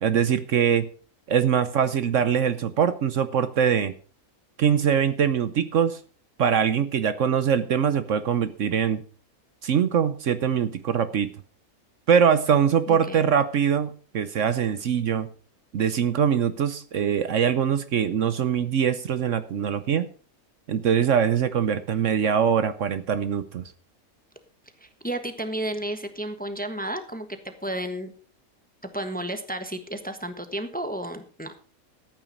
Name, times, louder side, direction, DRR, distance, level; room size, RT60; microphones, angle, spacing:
voice 1, 0.0-0.9 1.3-3.9 4.6-6.0 6.4-9.0 9.6-11.3 12.1-15.3 15.7-20.1 20.7-23.6, right 8 dB, 60° right, 12 dB, 1.1 m, -23 dB
voice 2, 12.9-13.3 24.8-28.1 28.9-31.5, right 1 dB, 5° left, 8 dB, 1.1 m, -32 dB
13.5 x 9.0 x 5.3 m, 0.39 s
omnidirectional pair, 1.5 m